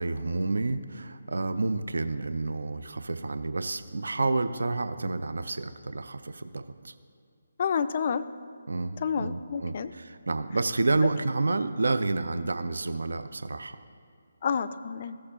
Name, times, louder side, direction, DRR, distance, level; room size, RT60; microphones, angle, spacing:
voice 1, 0.0-6.9 8.7-13.8, right 3 dB, 70° right, 11 dB, 0.4 m, -29 dB
voice 2, 7.6-8.2 9.0-9.9 14.4-15.2, left 6 dB, 40° left, 12 dB, 0.4 m, -29 dB
15.5 x 6.6 x 2.8 m, 2.3 s
figure-of-eight pair, 150°, 0 cm